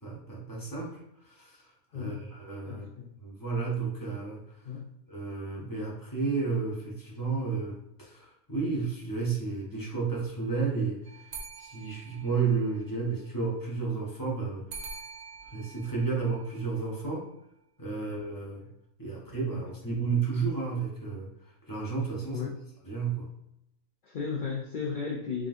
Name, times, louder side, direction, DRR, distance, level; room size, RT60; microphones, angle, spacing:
voice 1, 0.0-1.0 1.2-1.7 1.9-2.9 3.2-4.4 5.1-14.7 15.5-17.3 17.8-18.6 19.0-21.3 21.7-22.5 22.8-23.3, right 4 dB, 20° left, -4 dB, 0.6 m, -32 dB
voice 2, 2.7-3.1 4.6-4.8 17.9-18.3 19.5-19.6 22.3-22.6 24.0-25.5, left 5 dB, 65° left, -2 dB, 0.4 m, -35 dB
sound 1, 11.0-13.0 14.7-17.1, right 5 dB, 80° right, 0.3 m, -46 dB
3.7 x 3.6 x 2.5 m, 0.83 s
omnidirectional pair, 1.5 m